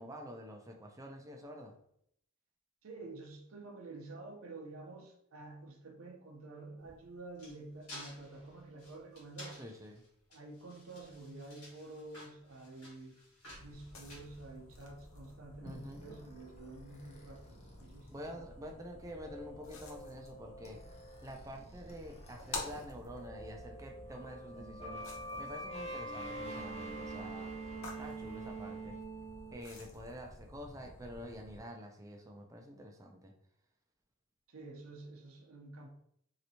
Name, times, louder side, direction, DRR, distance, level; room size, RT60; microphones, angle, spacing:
voice 1, 0.0-1.8 9.5-10.0 15.6-16.0 18.1-20.8 21.2-25.1 25.4-27.7 28.0-29.0 29.5-33.3, equal, 15° right, 2 dB, 0.4 m, -48 dB
voice 2, 2.8-9.6 10.3-13.2 13.6-18.4 34.5-35.9, right 2 dB, 70° right, 2 dB, 0.7 m, -49 dB
sound 1, 6.8-15.0, left 1 dB, 90° left, 1.4 m, -54 dB
sound 2, 13.5-31.6, left 2 dB, 65° left, 0.7 m, -51 dB
sound 3, 15.7-22.8 23.1-29.5, right 2 dB, 30° left, 0.6 m, -46 dB
3.2 x 2.9 x 2.8 m, 0.69 s
head